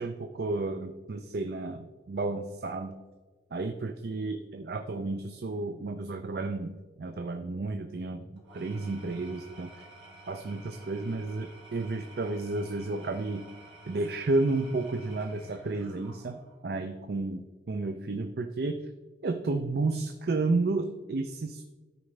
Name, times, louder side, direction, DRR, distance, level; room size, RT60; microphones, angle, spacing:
voice 1, 0.0-2.9 3.5-6.7 7.0-9.9 10.3-13.5 13.9-18.9 19.2-21.6, right 3 dB, 60° right, 7 dB, 0.5 m, -32 dB
Engine / Tools, 8.4-16.7, right 2 dB, 80° right, 2.1 m, -51 dB
13.0 x 5.0 x 3.2 m, 1.3 s
head